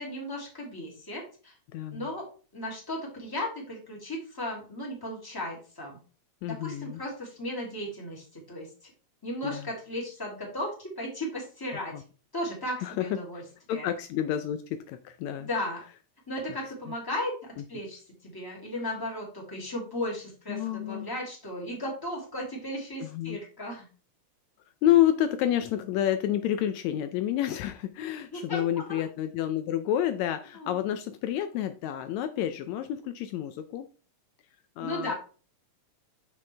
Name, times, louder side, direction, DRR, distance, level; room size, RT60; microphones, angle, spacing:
voice 1, 0.0-1.5 1.9-2.3 2.5-6.0 6.5-8.9 9.2-11.9 12.3-13.4 13.7-13.9 15.4-15.8 16.3-23.9 28.3-29.0 30.6-30.7 34.8-35.1, left 1 dB, 10° left, -3 dB, 2.3 m, -35 dB
voice 2, 1.7-2.1 6.4-7.0 9.4-9.7 11.9-12.0 12.8-13.1 13.7-15.5 20.5-21.1 23.0-23.4 24.8-33.9 34.8-35.1, left 11 dB, 80° left, 9 dB, 1.8 m, -29 dB
7.0 x 6.4 x 3.3 m, 0.37 s
omnidirectional pair, 3.3 m